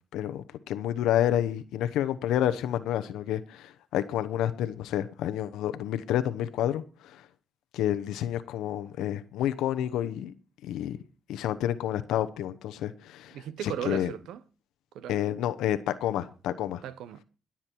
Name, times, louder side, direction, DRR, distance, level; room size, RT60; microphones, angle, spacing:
voice 1, 0.1-7.3 7.7-10.3 10.6-11.0 11.3-13.4 13.6-14.1 15.1-16.8, left 11 dB, 90° left, 0.9 m, -29 dB
voice 2, 13.3-14.4 14.9-15.2 16.8-17.2, right 10 dB, 85° right, 0.9 m, -37 dB
21.5 x 7.4 x 4.6 m
cardioid pair, 90°, 0 cm